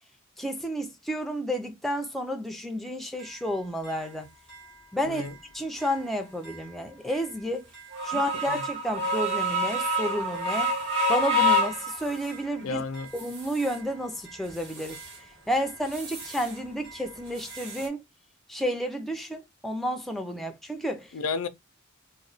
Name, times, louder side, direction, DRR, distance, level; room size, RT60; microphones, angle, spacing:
voice 1, 0.4-4.3 4.9-5.2 5.5-7.6 8.0-10.7 11.1-12.8 13.1-15.0 15.5-18.0 18.5-21.1, equal, ahead, 0.4 m, -31 dB
sound 1, 3.2-3.3 3.8-3.9 4.5-4.6 5.1-5.3 5.8-6.0 6.4-6.6 7.1-7.2 7.7-12.5 12.9-13.8 14.2-15.2 15.5-16.6 16.8-17.9, left 1 dB, 55° right, 1.3 m, -29 dB
voice 2, 5.0-5.4 8.1-8.2 8.5-8.6 12.6-13.1 21.1-21.5, left 4 dB, 80° left, 0.5 m, -32 dB
3.0 x 2.2 x 3.8 m
head